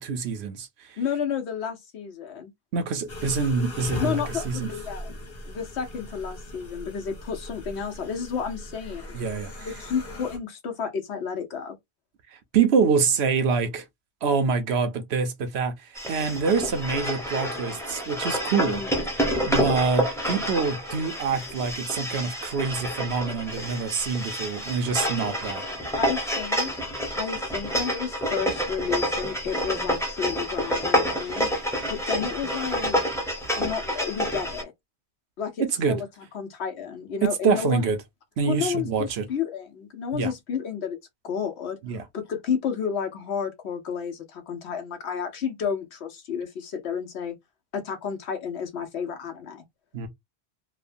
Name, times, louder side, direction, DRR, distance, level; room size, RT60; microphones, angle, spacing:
voice 1, 0.0-1.0 2.7-4.7 9.1-9.7 12.3-13.8 14.2-18.8 19.5-25.6 35.6-36.0 37.2-38.0 38.4-39.2 40.1-40.3 41.8-42.0 49.9-50.1, right 5 dB, 80° right, 1.0 m, -26 dB
voice 2, 1.0-2.5 4.0-5.1 5.4-9.2 9.6-11.7 18.5-18.9 26.0-26.8 27.2-31.5 31.9-33.0 33.6-34.7 35.4-36.1 36.3-37.9 38.5-41.0 41.2-47.4 47.7-49.6, left 7 dB, 90° left, 1.1 m, -31 dB
sound 1, 3.1-10.4, left 1 dB, 60° left, 1.2 m, -39 dB
sound 2, 15.9-34.6, equal, 5° left, 0.7 m, -28 dB
3.0 x 2.2 x 2.5 m
omnidirectional pair, 1.1 m